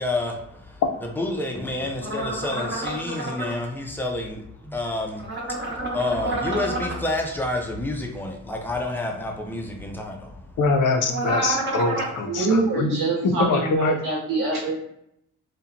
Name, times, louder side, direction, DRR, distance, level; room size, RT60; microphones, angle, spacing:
voice 1, 0.0-10.5, left 2 dB, 5° left, 1 dB, 0.3 m, -29 dB
sound 1, 2.0-3.5 5.2-7.0 11.1-12.2, right 2 dB, 35° right, 0.6 m, -29 dB
voice 2, 10.6-14.0, left 3 dB, 70° left, 4 dB, 0.5 m, -23 dB
voice 3, 12.2-14.7, right 3 dB, 80° right, -4 dB, 0.6 m, -25 dB
2.8 x 2.1 x 2.4 m, 0.75 s
wide cardioid pair, 135°, 32 cm